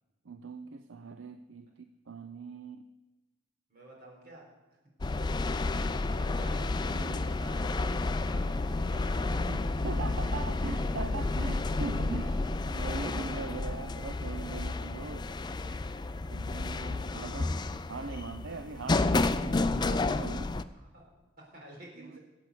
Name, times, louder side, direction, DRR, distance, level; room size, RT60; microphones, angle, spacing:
voice 1, 0.2-2.9 6.9-7.3 9.2-15.3 16.3-17.6 17.9-20.5 22.0-22.2, right 4 dB, 70° right, 10 dB, 0.6 m, -41 dB
voice 2, 3.7-4.5 5.7-9.5 15.7-15.8 18.4-18.5 20.7-22.2, right 1 dB, 50° right, -1 dB, 4.1 m, -51 dB
sound 1, 5.0-20.6, left 2 dB, 20° left, 0.4 m, -31 dB
13.0 x 8.3 x 7.9 m, 1.2 s
head